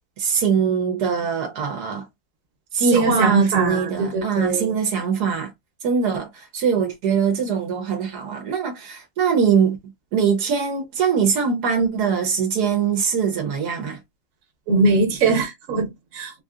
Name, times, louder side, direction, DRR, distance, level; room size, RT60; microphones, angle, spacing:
voice 1, 0.2-2.0 2.7-5.5 5.8-9.8 10.1-14.0, right 6 dB, 80° right, 1.3 m, -22 dB
voice 2, 2.8-4.7 14.7-16.4, right 3 dB, 60° right, 1.4 m, -21 dB
3.6 x 2.7 x 2.4 m
omnidirectional pair, 1.7 m